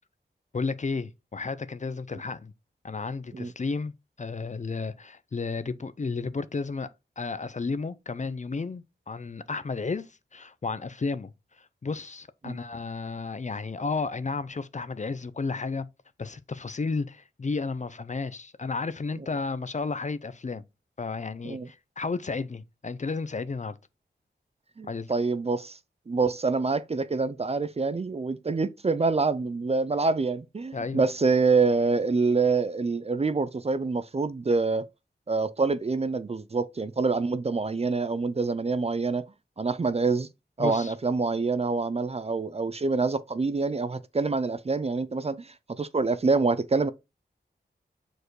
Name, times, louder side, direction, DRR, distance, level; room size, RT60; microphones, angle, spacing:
voice 1, 0.5-2.5 2.8-6.9 7.2-11.3 11.6-15.9 16.2-20.6 21.0-23.7 24.9-25.1 30.7-31.0 40.6-40.9, left 4 dB, 40° left, 0.5 m, -32 dB
voice 2, 24.8-25.8 26.1-34.8 35.3-39.3 39.6-40.3 40.6-46.9, right 4 dB, 35° right, 0.4 m, -26 dB
6.5 x 4.6 x 3.2 m
wide cardioid pair, 80°, 19 cm